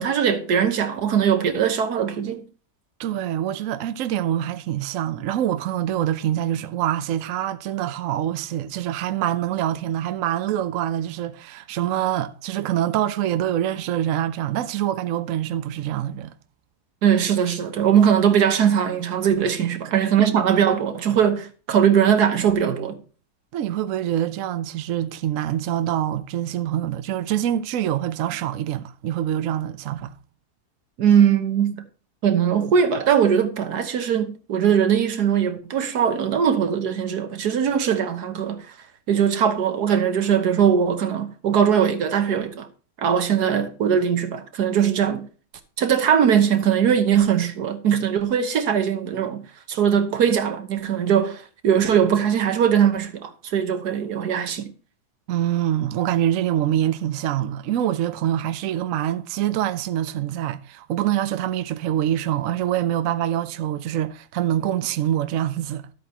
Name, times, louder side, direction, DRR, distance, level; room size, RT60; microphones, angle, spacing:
voice 1, 0.0-2.4 17.0-23.0 31.0-31.8 32.2-38.6 39.1-42.7 43.0-45.3 45.8-49.4 49.7-54.7, right 8 dB, 90° right, 1.7 m, -20 dB
voice 2, 3.0-16.3 20.2-20.3 23.5-30.1 55.3-65.9, right 11 dB, 65° right, 1.0 m, -25 dB
12.5 x 8.5 x 2.9 m
omnidirectional pair, 1.6 m